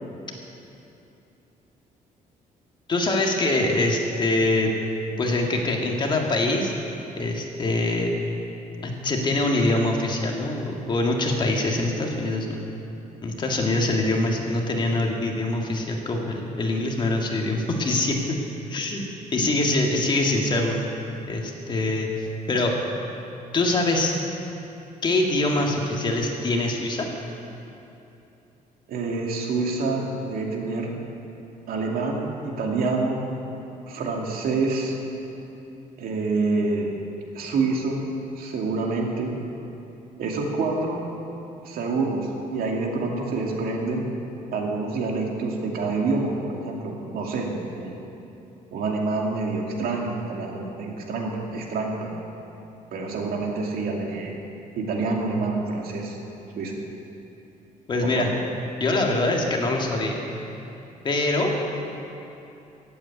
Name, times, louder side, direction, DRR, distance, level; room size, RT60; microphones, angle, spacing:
voice 1, 2.9-4.7 5.2-6.7 7.2-8.2 8.8-12.6 13.2-18.4 18.7-19.0 19.3-20.8 21.3-22.8 23.5-24.2 25.0-27.1 57.9-58.3 58.8-60.2 61.0-61.5, left 2 dB, 30° left, 1 dB, 1.8 m, -24 dB
voice 2, 28.9-30.9 31.7-33.2 33.9-35.0 36.0-36.9 37.3-38.0 38.4-39.3 40.2-41.0 41.6-44.1 44.5-48.0 48.7-52.1 52.9-54.4 54.8-56.2 56.6-56.8 58.0-58.3, right 3 dB, 85° right, 0 dB, 2.5 m, -27 dB
15.5 x 8.6 x 9.3 m, 2.9 s
cardioid pair, 160°, 15 cm